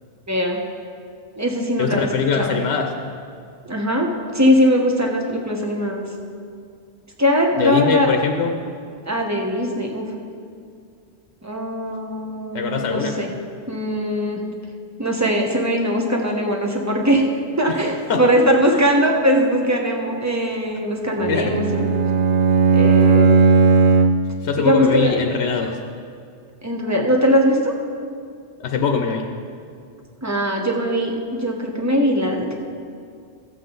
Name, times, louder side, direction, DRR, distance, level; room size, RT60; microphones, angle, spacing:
voice 1, 0.3-0.6 1.3-2.1 2.4-2.6 3.7-6.1 7.2-8.1 9.1-10.1 11.4-13.3 13.7-14.4 15.0-17.3 17.6-21.9 22.7-23.3 24.6-25.1 26.6-27.7 30.2-32.6, equal, 15° right, 1 dB, 1.0 m, -20 dB
voice 2, 1.8-2.9 7.6-8.5 12.5-13.2 17.7-17.8 18.1-18.2 18.7-18.9 21.3-21.6 24.4-25.8 28.6-29.3, left 5 dB, 75° left, 4 dB, 0.9 m, -22 dB
Bowed string instrument, 21.2-24.4, right 4 dB, 70° right, 0.8 m, -16 dB
14.5 x 7.7 x 3.9 m, 2.3 s
omnidirectional pair, 1.1 m